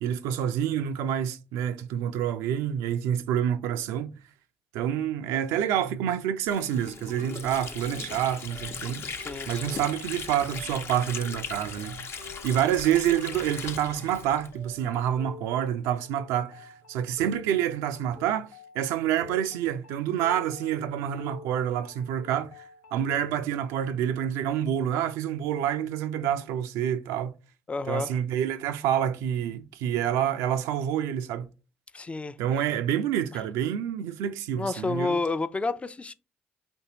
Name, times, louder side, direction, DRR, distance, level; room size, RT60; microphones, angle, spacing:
voice 1, 0.0-4.1 4.7-9.0 9.5-12.1 12.4-18.5 18.7-22.6 22.9-27.3 27.9-31.5 32.4-35.2, right 10 dB, 80° right, 0.4 m, -28 dB
Water / Sink (filling or washing), 6.5-15.0, left 5 dB, 50° left, 0.8 m, -39 dB
sound 1, 7.2-23.2, left 5 dB, 80° left, 0.7 m, -49 dB
voice 2, 9.1-9.8 27.7-28.2 31.9-32.3 34.6-36.1, left 3 dB, 25° left, 0.4 m, -30 dB
4.3 x 3.2 x 2.8 m
hypercardioid pair, 55°, 5 cm